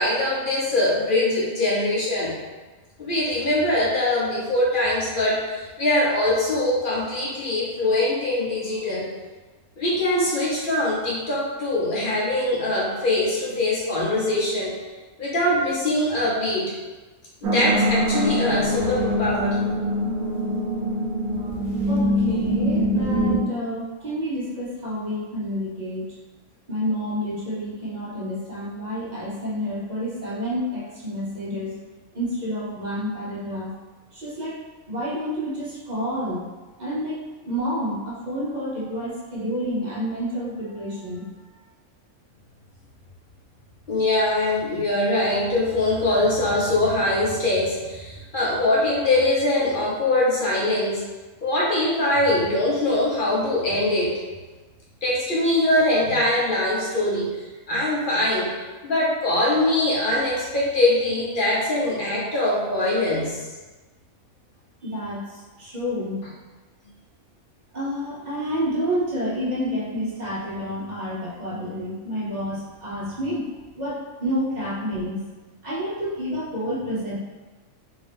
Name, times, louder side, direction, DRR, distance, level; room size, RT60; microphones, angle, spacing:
voice 1, 0.0-2.3 3.0-9.1 9.8-14.7 15.2-16.7 17.4-19.6 21.3-21.8 43.9-51.0 51.4-54.2 55.0-57.4 57.7-58.6 58.8-63.4, left 1 dB, 45° left, -6 dB, 0.7 m, -22 dB
sound 1, 17.4-23.4, equal, 75° right, 1.1 m, -23 dB
voice 2, 21.9-26.1 26.7-31.7 32.1-33.7 34.1-34.6 34.9-36.5 36.8-41.3 64.8-66.2 67.7-75.2 75.6-77.2, equal, 40° right, -7 dB, 0.7 m, -29 dB
2.8 x 2.8 x 3.3 m, 1.2 s
omnidirectional pair, 1.5 m